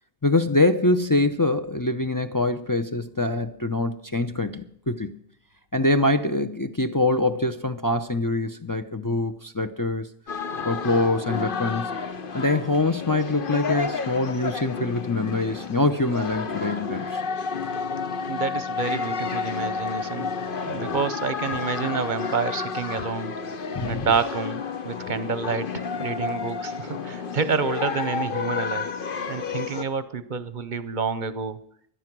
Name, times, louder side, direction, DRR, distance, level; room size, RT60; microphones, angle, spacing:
voice 1, 0.2-5.2 5.7-10.1 10.6-11.9 12.3-17.2 23.8-24.1, left 2 dB, 25° left, 0.6 m, -24 dB
sound 1, 10.3-29.8, left 5 dB, 60° left, 1.2 m, -31 dB
voice 2, 18.3-20.3 20.6-23.3 23.8-28.9 29.3-31.6, right 5 dB, 55° right, 0.8 m, -28 dB
17.5 x 11.5 x 6.1 m
omnidirectional pair, 1.0 m